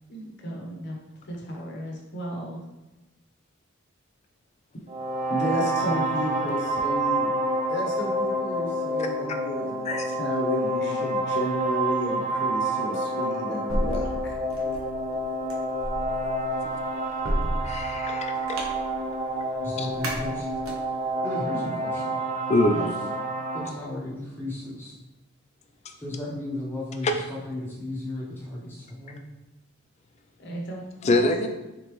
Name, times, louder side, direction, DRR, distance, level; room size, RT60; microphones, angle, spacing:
voice 1, 0.1-1.0 1.3-2.6 5.3-7.3 7.7-14.3 30.4-31.1, equal, 50° left, -1 dB, 0.9 m, -32 dB
sound 1, 4.9-23.7, right 1 dB, 35° right, 0.4 m, -28 dB
sound 2, 13.7-21.1, equal, 70° right, 0.8 m, -33 dB
voice 2, 17.6-18.6 19.8-19.9 22.5-22.8 31.0-31.5, left 2 dB, 30° left, 5 dB, 0.3 m, -24 dB
voice 3, 19.6-20.5 21.2-22.2 22.7-22.9 23.5-24.9 26.0-29.2, left 1 dB, 10° left, -6 dB, 0.9 m, -35 dB
3.8 x 3.6 x 3.0 m, 1.0 s
head